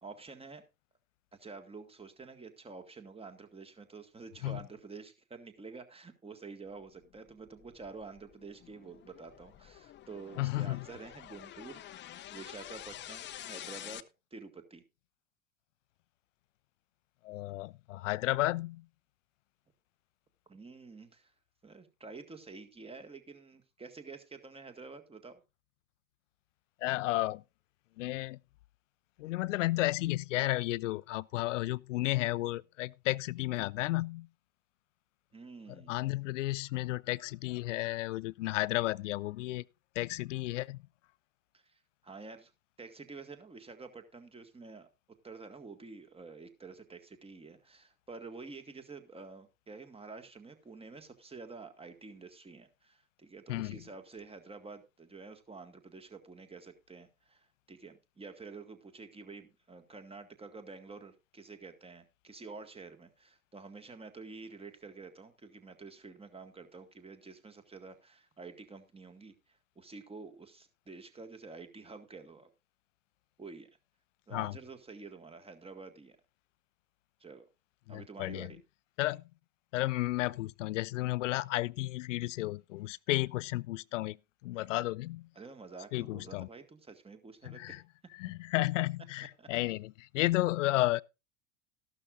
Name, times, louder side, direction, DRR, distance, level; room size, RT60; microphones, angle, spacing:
voice 1, 0.0-0.6 1.3-14.0 14.3-14.8 20.5-21.3 21.6-25.4 35.3-36.1 41.5-42.5 42.8-44.9 45.2-72.5 73.4-73.7 74.3-76.2 77.2-77.5 77.9-78.6 85.4-87.8 88.2-88.3 89.2-89.5, right 4 dB, 15° right, 1.9 m, -49 dB
sound 1, 7.0-14.0, left 12 dB, 25° left, 0.7 m, -48 dB
voice 2, 10.4-10.8 17.2-18.8 26.8-27.4 28.0-28.4 29.2-34.3 35.9-39.6 40.0-40.8 53.5-53.8 74.3-74.5 77.9-78.5 79.0-79.2 79.7-84.2 84.4-85.3 85.9-86.5 87.4-87.8 88.2-91.0, left 18 dB, 65° left, 0.5 m, -32 dB
14.0 x 12.0 x 2.5 m
figure-of-eight pair, 80°, 40 cm